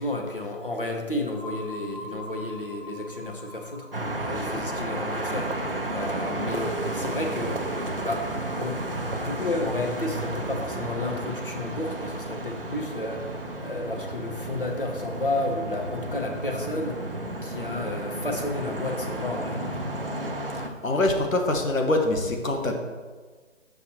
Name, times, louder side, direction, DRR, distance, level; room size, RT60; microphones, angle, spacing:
voice 1, 0.0-7.6 8.0-8.3 8.6-17.0 17.4-19.9, left 2 dB, 45° left, 2 dB, 0.8 m, -32 dB
sound 1, 1.3-7.0, left 1 dB, 25° left, 2.0 m, -44 dB
sound 2, 3.9-20.7, right 1 dB, 45° right, 0.5 m, -32 dB
voice 2, 20.8-22.7, left 2 dB, 80° left, 3 dB, 1.3 m, -24 dB
7.2 x 5.7 x 2.9 m, 1.4 s
figure-of-eight pair, 180°, 39 cm